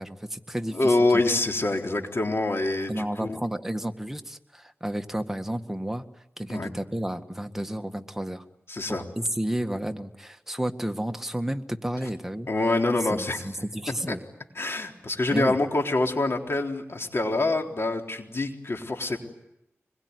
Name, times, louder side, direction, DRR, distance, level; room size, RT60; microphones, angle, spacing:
voice 1, 0.0-1.2 2.9-6.0 6.4-8.4 8.9-12.5 13.1-14.2 15.3-15.6, right 1 dB, 10° right, 6 dB, 1.8 m, -31 dB
voice 2, 0.7-3.3 6.5-6.7 8.7-9.0 12.5-13.5 14.1-14.2 14.6-19.2, left 2 dB, 55° left, 2 dB, 3.8 m, -25 dB
25.5 x 22.0 x 9.7 m, 0.86 s
wide cardioid pair, 65°, 5 cm